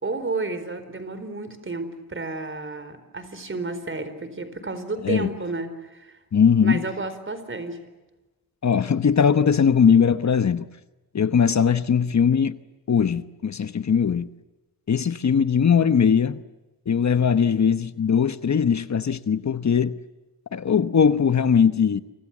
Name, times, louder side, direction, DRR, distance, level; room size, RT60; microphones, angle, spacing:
voice 1, 0.0-6.2 6.6-7.9, right 3 dB, 35° right, 4.4 m, -31 dB
voice 2, 6.3-6.8 8.6-10.7 11.1-12.6 12.9-14.3 14.9-16.4 16.9-20.0 20.5-22.0, left 7 dB, 50° left, 1.0 m, -20 dB
29.5 x 26.0 x 7.3 m
wide cardioid pair, 115°, 35 cm